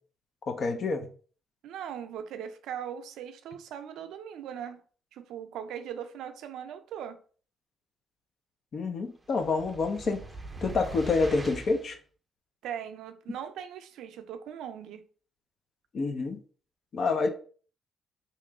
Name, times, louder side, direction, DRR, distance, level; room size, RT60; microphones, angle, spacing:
voice 1, 0.5-1.1 8.7-10.2 10.6-12.0 15.9-16.4 16.9-17.3, left 3 dB, 55° left, 0.6 m, -28 dB
voice 2, 1.6-4.8 5.1-7.2 12.6-15.0, right 9 dB, 85° right, 0.4 m, -39 dB
sound 1, 9.3-11.9, right 2 dB, 20° right, 0.5 m, -41 dB
3.0 x 2.9 x 3.5 m
cardioid pair, 90°, 0 cm